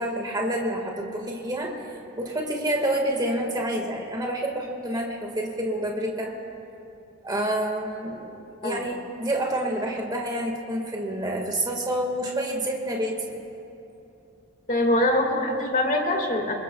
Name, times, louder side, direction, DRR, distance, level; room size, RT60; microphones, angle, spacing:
voice 1, 0.0-1.8 2.2-6.3 7.2-13.4, right 1 dB, 20° right, 1 dB, 1.8 m, -28 dB
voice 2, 14.7-16.5, left 1 dB, 40° left, 2 dB, 2.0 m, -23 dB
26.0 x 22.0 x 2.3 m, 2.8 s
head